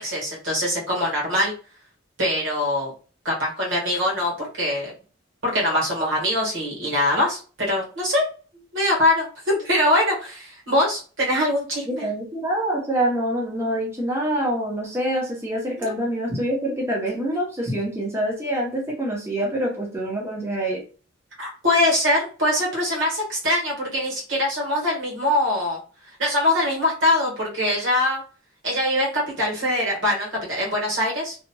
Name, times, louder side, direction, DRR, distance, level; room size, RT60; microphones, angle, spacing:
voice 1, 0.0-1.5 2.2-2.9 3.2-4.9 5.4-8.3 8.7-12.0 15.8-15.9 21.4-25.8 26.2-28.2 28.6-31.4, left 1 dB, 70° right, -3 dB, 1.4 m, -23 dB
voice 2, 11.9-20.8, right 1 dB, 15° right, -3 dB, 0.7 m, -26 dB
2.8 x 2.7 x 2.2 m, 0.37 s
head